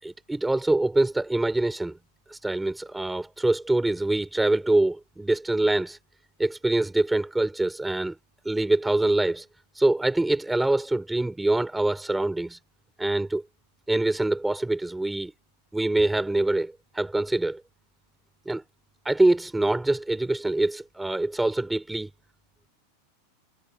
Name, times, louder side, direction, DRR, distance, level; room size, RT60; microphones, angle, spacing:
voice 1, 0.0-2.0 2.3-6.0 6.4-8.1 8.4-9.4 9.7-12.6 13.0-13.4 13.9-15.3 15.7-17.6 18.4-18.6 19.0-22.1, right 2 dB, 5° right, 6.7 m, -24 dB
hypercardioid pair, 95°, 0 cm